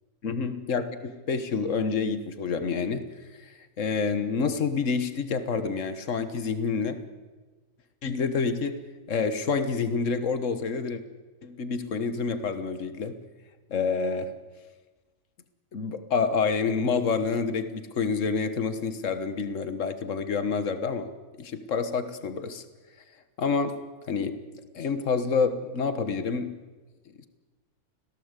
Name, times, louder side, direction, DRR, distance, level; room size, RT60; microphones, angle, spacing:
voice 1, 0.2-3.0 3.3-7.0 8.0-8.8 9.1-11.0 11.4-13.2 13.7-14.3 15.7-21.1 21.4-22.6 23.4-24.4 24.7-26.6, left 5 dB, 70° left, 10 dB, 1.8 m, -28 dB
26.5 x 17.0 x 8.3 m, 1.3 s
omnidirectional pair, 1.4 m